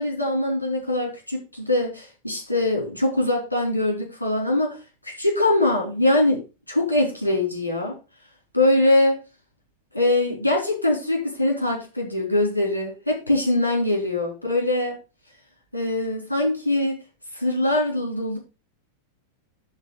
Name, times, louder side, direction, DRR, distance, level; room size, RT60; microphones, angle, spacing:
voice 1, 0.0-4.8 5.2-8.0 8.5-9.2 9.9-15.0 15.7-16.9 17.3-18.4, left 1 dB, 85° left, 0 dB, 4.4 m, -22 dB
12.0 x 4.3 x 5.7 m, 0.30 s
figure-of-eight pair, 90°, 0 cm